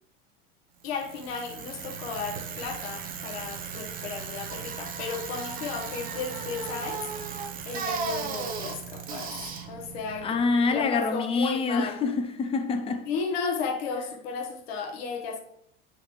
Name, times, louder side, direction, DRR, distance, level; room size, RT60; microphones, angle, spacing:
voice 1, 0.8-12.0 13.0-15.4, left 5 dB, 70° left, 1.3 m, -34 dB
Bicycle, 0.8-10.9, right 5 dB, 25° right, 0.8 m, -36 dB
voice 2, 10.2-13.1, left 4 dB, 20° left, 0.5 m, -26 dB
9.6 x 4.1 x 3.1 m
supercardioid pair, 140°, 32 cm